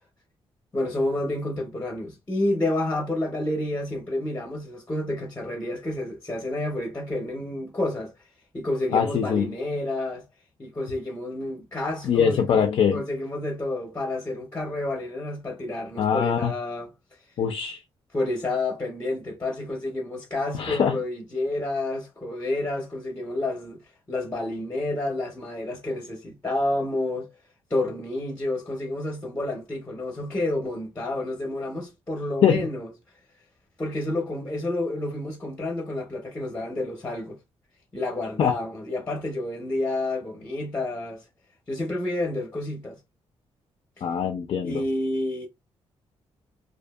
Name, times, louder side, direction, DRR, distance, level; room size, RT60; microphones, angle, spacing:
voice 1, 0.7-8.1 8.5-10.2 10.6-12.6 12.9-16.9 18.1-23.8 24.1-27.3 27.7-32.9 33.8-37.4 37.9-41.2 41.7-43.0 44.6-45.5, left 2 dB, 20° left, 0.6 m, -29 dB
voice 2, 8.9-9.5 12.0-13.0 16.0-16.5 17.4-17.8 20.5-21.0 32.4-32.7 38.4-38.5 44.0-44.8, left 7 dB, 55° left, 0.4 m, -23 dB
2.6 x 2.3 x 2.3 m
wide cardioid pair, 155°, 10 cm